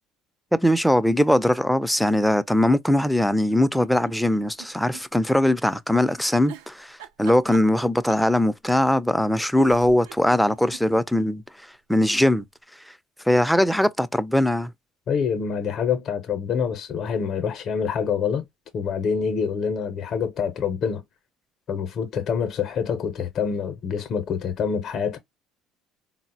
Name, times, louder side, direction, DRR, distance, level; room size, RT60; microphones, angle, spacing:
voice 1, 0.5-11.4 11.9-12.4 13.3-14.7, left 1 dB, ahead, 0.4 m, -21 dB
sound 1, 3.1-5.0 5.4-5.5 6.5-8.3 9.2-9.3 9.6-11.3 11.7-11.8 12.0-12.1, right 10 dB, 80° right, 0.4 m, -42 dB
voice 2, 15.1-18.4 18.7-21.0 21.7-25.2, left 6 dB, 50° left, 0.6 m, -26 dB
3.8 x 2.0 x 2.6 m
hypercardioid pair, 70°, 0 cm